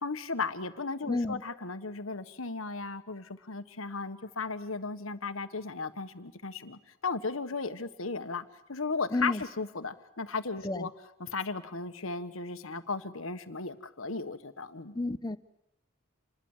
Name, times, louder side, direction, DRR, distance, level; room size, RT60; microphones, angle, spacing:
voice 1, 0.0-10.9 11.2-15.0, left 4 dB, 85° left, 9 dB, 1.5 m, -36 dB
voice 2, 1.1-1.4 9.1-9.4 10.6-10.9 14.9-15.4, left 2 dB, 20° left, 13 dB, 0.8 m, -30 dB
27.5 x 21.0 x 7.4 m, 0.81 s
head